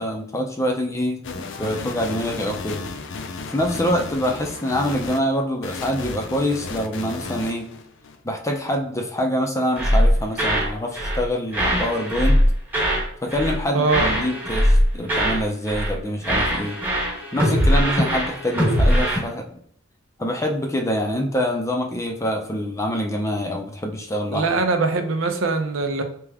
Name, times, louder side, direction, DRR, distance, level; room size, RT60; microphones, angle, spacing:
voice 1, 0.0-2.8 3.5-7.7 8.2-12.4 13.2-16.8 17.3-19.6 20.2-24.5, equal, 15° left, 2 dB, 0.5 m, -25 dB
sound 1, 1.2-5.2 5.6-8.2, left 4 dB, 60° left, 0.5 m, -33 dB
sound 2, 9.8-10.7 11.0-11.2 11.5-13.1 13.3-13.6 13.9-15.4 15.7-16.0 16.2-19.2, equal, 10° right, 1.3 m, -20 dB
voice 2, 13.7-14.1 24.3-26.0, right 3 dB, 75° right, 5 dB, 0.7 m, -22 dB
3.4 x 2.9 x 3.5 m, 0.64 s
head